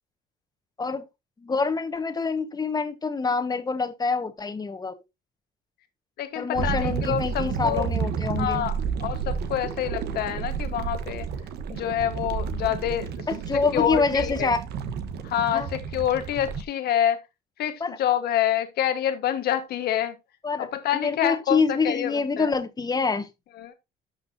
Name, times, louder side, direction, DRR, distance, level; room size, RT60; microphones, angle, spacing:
voice 1, 1.4-4.9 6.3-8.7 13.3-14.6 15.5-15.7 17.8-18.0 20.4-23.3, left 4 dB, 25° left, 1.4 m, -26 dB
voice 2, 6.2-7.9 8.4-11.3 11.7-13.1 13.7-14.5 15.2-17.2 17.6-20.2 20.6-22.5 23.6-23.7, left 10 dB, 70° left, 1.6 m, -27 dB
sound 1, 6.5-16.6, right 6 dB, 75° right, 1.2 m, -31 dB
12.0 x 6.0 x 2.8 m
cardioid pair, 110°, 17 cm